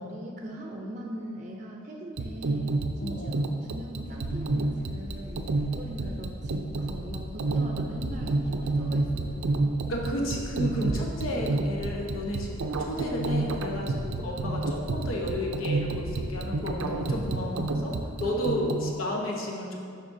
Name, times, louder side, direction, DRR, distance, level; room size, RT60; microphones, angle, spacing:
voice 1, 0.0-9.6 17.7-17.8 18.2-18.7, equal, 35° right, 0 dB, 0.5 m, -41 dB
sound 1, 2.2-18.9, right 2 dB, 90° right, 0.5 m, -29 dB
voice 2, 3.0-3.5 9.9-17.9 18.2-19.8, equal, 90° left, -1 dB, 1.0 m, -32 dB
sound 2, 4.0-17.8, left 1 dB, 30° left, 0.4 m, -42 dB
11.0 x 4.2 x 2.7 m, 2.4 s
head